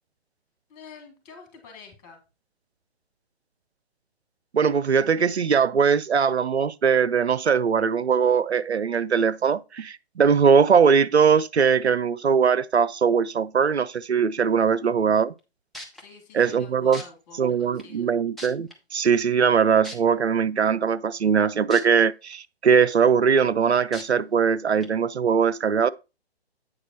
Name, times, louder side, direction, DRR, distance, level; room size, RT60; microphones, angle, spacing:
voice 1, 0.7-2.2 14.6-14.9 15.9-18.1, left 5 dB, 25° left, 2.9 m, -47 dB
voice 2, 4.5-15.3 16.3-17.0 17.4-25.9, right 6 dB, 90° right, 0.5 m, -21 dB
sound 1, 15.4-15.5 15.7-16.0 16.9-17.0 17.8-17.9 18.4-18.7 19.8-20.0 21.7-21.8 22.3-22.4 23.9-24.0 24.8-24.9, left 1 dB, ahead, 0.7 m, -38 dB
8.6 x 5.0 x 4.3 m
figure-of-eight pair, 130°, 32 cm